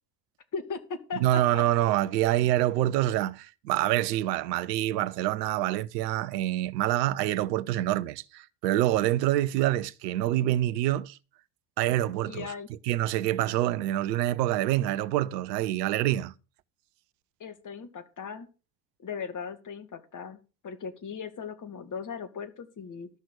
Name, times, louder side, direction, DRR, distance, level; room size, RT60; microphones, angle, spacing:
voice 1, 0.5-1.6 12.2-12.7 17.4-18.5 19.0-20.4 20.6-23.1, left 5 dB, 35° left, 2.2 m, -38 dB
voice 2, 1.1-11.2 11.8-12.5 12.8-16.3, right 14 dB, 75° right, 0.8 m, -26 dB
13.0 x 6.0 x 6.4 m
hypercardioid pair, 65°, 49 cm